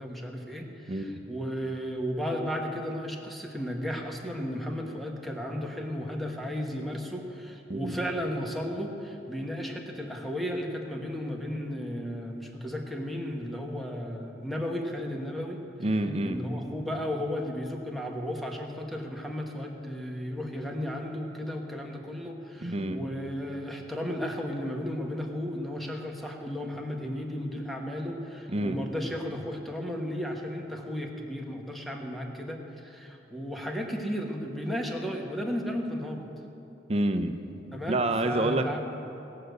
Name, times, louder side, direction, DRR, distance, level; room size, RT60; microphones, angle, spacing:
voice 1, 0.0-15.6 16.2-36.3 37.7-38.8, equal, ahead, 1 dB, 1.2 m, -34 dB
voice 2, 15.8-16.4 22.6-23.0 28.5-28.8 36.9-37.4 37.9-38.8, right 1 dB, 35° right, 7 dB, 0.7 m, -28 dB
18.5 x 6.6 x 8.0 m, 2.9 s
head